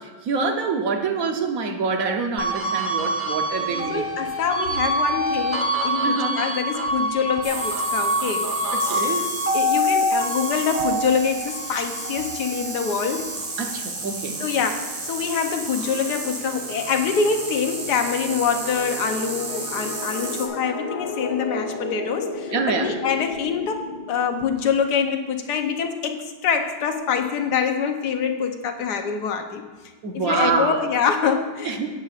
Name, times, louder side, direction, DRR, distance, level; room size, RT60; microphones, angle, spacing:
voice 1, 0.2-4.0 6.0-6.4 8.9-9.3 13.6-14.3 22.5-22.9 30.0-30.8 31.7-31.9, right 4 dB, 55° right, 4 dB, 1.2 m, -25 dB
sound 1, 2.4-15.0 15.4-17.1, equal, 15° right, 0.4 m, -26 dB
voice 2, 3.6-8.6 9.2-9.3 9.5-13.3 14.4-29.6 30.1-31.9, left 6 dB, 65° left, 6 dB, 1.3 m, -25 dB
sound 2, 7.4-20.5, right 3 dB, 75° right, 2.4 m, -32 dB
sound 3, 14.3-24.9, left 3 dB, 80° left, 1.9 m, -35 dB
16.5 x 7.8 x 2.5 m, 1.4 s
omnidirectional pair, 2.1 m